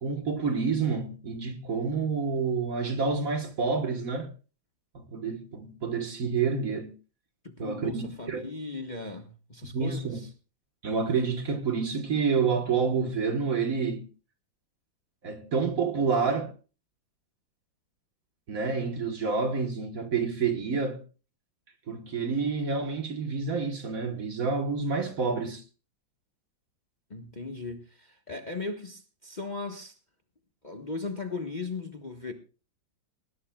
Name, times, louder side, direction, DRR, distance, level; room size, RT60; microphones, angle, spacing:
voice 1, 0.0-4.3 4.9-6.9 7.6-8.5 9.7-10.2 10.8-14.1 15.2-16.5 18.5-21.0 21.9-25.6, right 5 dB, 50° right, 1.6 m, -28 dB
voice 2, 7.4-10.3 27.1-30.0 30.6-32.3, left 3 dB, 25° left, 1.1 m, -37 dB
19.5 x 17.5 x 2.3 m
omnidirectional pair, 2.1 m